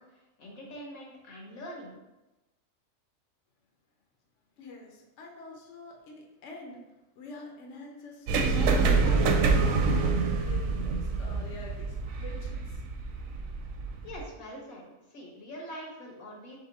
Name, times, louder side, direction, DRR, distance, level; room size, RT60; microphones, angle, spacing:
voice 1, 0.0-1.9 14.0-14.8 15.1-16.6, equal, 85° left, -2 dB, 1.7 m, -44 dB
voice 2, 4.6-6.8 7.2-12.8, left 2 dB, 65° left, 0 dB, 1.0 m, -46 dB
sound 1, 8.3-14.2, right 4 dB, 75° right, 1.0 m, -26 dB
3.7 x 3.6 x 4.0 m, 1.0 s
omnidirectional pair, 1.4 m